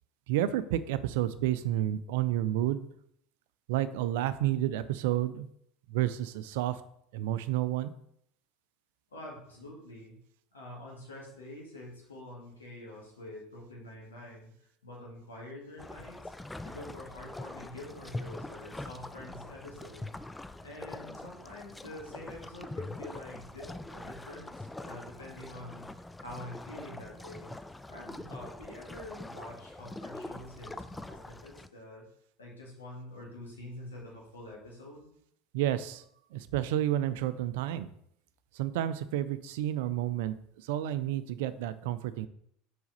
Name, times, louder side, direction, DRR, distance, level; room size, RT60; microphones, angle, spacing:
voice 1, 0.3-2.9 3.7-5.5 5.9-6.8 7.1-7.9 35.5-36.0 36.3-37.9 38.5-42.3, right 12 dB, 65° right, 14 dB, 0.4 m, -30 dB
voice 2, 9.1-10.2 10.5-14.5 14.8-16.3 16.6-20.1 20.6-25.9 26.2-27.5 27.9-32.1 32.4-35.1, left 1 dB, 85° left, -2 dB, 1.9 m, -46 dB
sound 1, 15.8-31.7, left 2 dB, 10° left, 0.3 m, -43 dB
4.7 x 4.1 x 5.4 m, 0.71 s
figure-of-eight pair, 75°, 0 cm